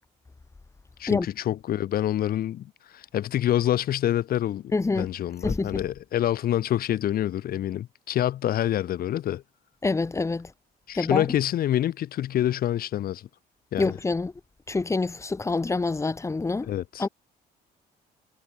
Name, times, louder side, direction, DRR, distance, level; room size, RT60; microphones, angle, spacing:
voice 1, 1.0-9.4 10.9-13.3 13.7-13.9 16.7-17.1, left 12 dB, 60° left, 3.4 m, -27 dB
voice 2, 4.7-5.1 5.4-5.8 9.8-10.5 10.9-11.3 13.8-14.3 14.7-16.7 17.0-17.1, left 3 dB, 15° left, 1.7 m, -26 dB
cardioid pair, 110°, 17 cm